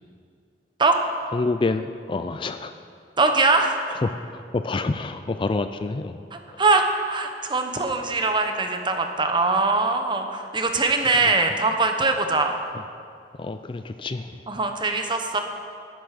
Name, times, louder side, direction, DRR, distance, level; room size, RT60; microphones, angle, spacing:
voice 1, 1.3-2.7 4.0-6.2 6.5-6.6 13.4-14.4, left 3 dB, 30° left, 10 dB, 0.4 m, -27 dB
voice 2, 3.2-3.8 6.3-12.6 14.5-15.4, right 3 dB, 25° right, 5 dB, 1.1 m, -22 dB
11.5 x 11.0 x 6.6 m, 2.3 s
head